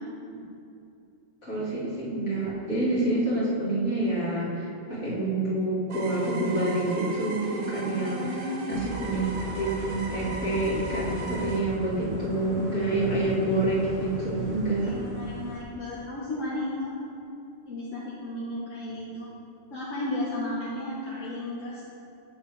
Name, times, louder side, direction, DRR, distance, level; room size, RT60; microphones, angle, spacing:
voice 1, 1.4-4.5 4.9-8.3 8.7-15.0, right 2 dB, 70° left, -8 dB, 2.2 m, -27 dB
sound 1, 5.9-11.6, right 2 dB, 85° right, 1.4 m, -38 dB
voice 2, 8.0-8.7 14.8-16.9 17.7-19.3 19.7-21.8, left 1 dB, 85° left, -7 dB, 1.4 m, -34 dB
sound 2, 8.7-15.6, right 2 dB, 45° right, 0.8 m, -38 dB
8.0 x 6.4 x 3.2 m, 2.6 s
omnidirectional pair, 1.3 m